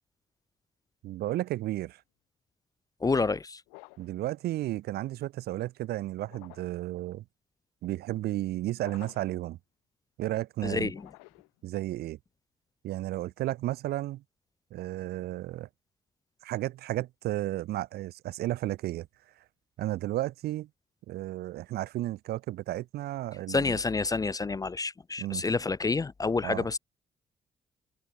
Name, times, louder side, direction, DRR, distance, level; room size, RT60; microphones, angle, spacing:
voice 1, 1.0-2.0 4.0-7.2 7.8-9.6 10.2-10.9 11.6-12.2 12.8-14.2 14.7-15.7 16.4-19.1 19.8-20.7 21.1-23.8 25.2-25.4 26.4-26.7, right 15 dB, 70° right, 0.5 m, -33 dB
voice 2, 3.0-3.6 10.6-11.0 23.5-26.8, left 4 dB, 20° left, 0.4 m, -28 dB
sound 1, 3.7-4.2 6.2-6.9 8.8-9.4 10.9-11.6, left 40 dB or more, 85° left, 3.5 m, -52 dB
hypercardioid pair, 45°, 17 cm